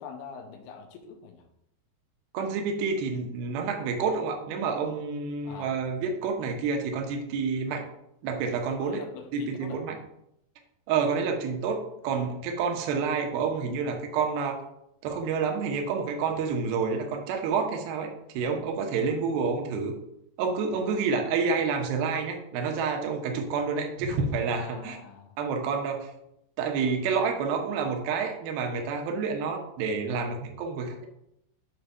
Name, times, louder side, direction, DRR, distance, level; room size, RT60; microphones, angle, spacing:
voice 1, 0.0-1.5 5.4-5.8 8.7-9.8 19.2-19.4 21.1-21.2 24.5-25.4, left 6 dB, 80° left, 5 dB, 2.7 m, -44 dB
voice 2, 2.3-7.8 8.2-9.0 9.3-10.0 10.9-14.6 15.0-18.1 18.3-20.0 20.4-25.0 25.4-26.1 26.6-31.1, right 5 dB, 75° right, 3 dB, 2.6 m, -29 dB
7.3 x 3.2 x 5.4 m, 0.79 s
omnidirectional pair, 4.7 m